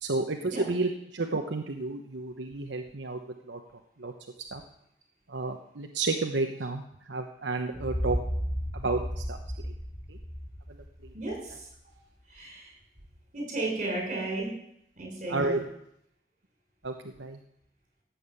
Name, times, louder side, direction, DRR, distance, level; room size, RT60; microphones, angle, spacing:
voice 1, 0.0-3.6 4.0-4.1 4.5-4.6 5.3-8.2 8.7-9.4 9.6-9.7 10.1-10.2 10.7-10.8 11.0-11.1 15.3-15.6 16.8-17.4, right 3 dB, 80° right, 3 dB, 1.1 m, -31 dB
sound 1, 7.7-11.6, equal, 20° right, 4.3 m, -34 dB
voice 2, 11.1-12.0 12.2-12.7 13.3-14.5 14.9-15.6, right 2 dB, 45° right, 0 dB, 6.5 m, -34 dB
16.5 x 7.3 x 8.4 m, 0.75 s
head